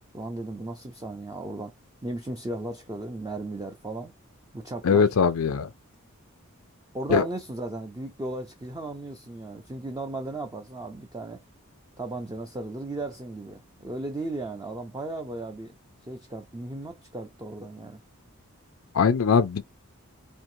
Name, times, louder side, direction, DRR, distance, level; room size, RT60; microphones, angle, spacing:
voice 1, 0.1-1.7 2.0-4.1 4.5-5.1 6.9-11.4 12.0-15.8 16.0-18.0, right 2 dB, 15° right, 0.5 m, -35 dB
voice 2, 4.8-5.7 7.1-7.3 18.9-19.6, left 6 dB, 75° left, 0.5 m, -21 dB
4.4 x 2.7 x 2.7 m
head